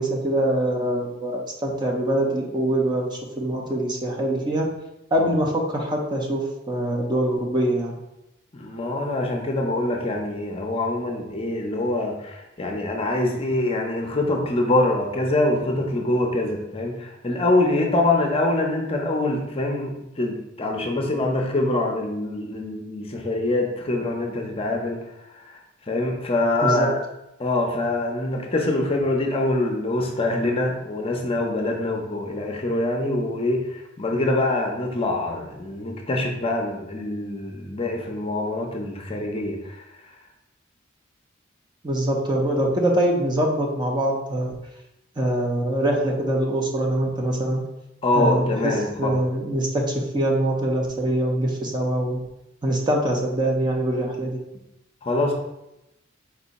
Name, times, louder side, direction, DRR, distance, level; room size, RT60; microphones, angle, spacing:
voice 1, 0.0-4.6 5.1-7.9 26.6-26.9 41.8-44.5 45.2-47.6 48.1-52.2 52.6-54.4, right 1 dB, 25° right, -1 dB, 0.6 m, -24 dB
voice 2, 8.5-19.9 20.2-25.0 25.9-27.0 27.4-33.6 34.0-39.6 48.0-49.1 55.0-55.3, left 2 dB, 30° left, 1 dB, 0.6 m, -24 dB
4.5 x 2.7 x 4.0 m, 0.88 s
head